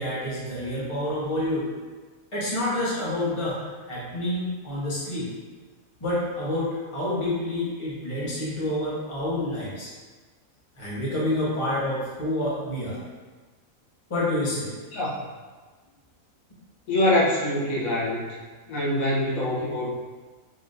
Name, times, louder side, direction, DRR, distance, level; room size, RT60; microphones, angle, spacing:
voice 1, 0.0-1.7 2.3-3.6 3.9-5.3 6.0-9.9 10.8-13.0 14.1-14.7, left 1 dB, 25° left, -9 dB, 1.0 m, -28 dB
voice 2, 16.9-18.3 18.7-19.9, left 1 dB, 75° left, -6 dB, 1.2 m, -24 dB
3.7 x 3.1 x 2.6 m, 1.4 s
omnidirectional pair, 1.5 m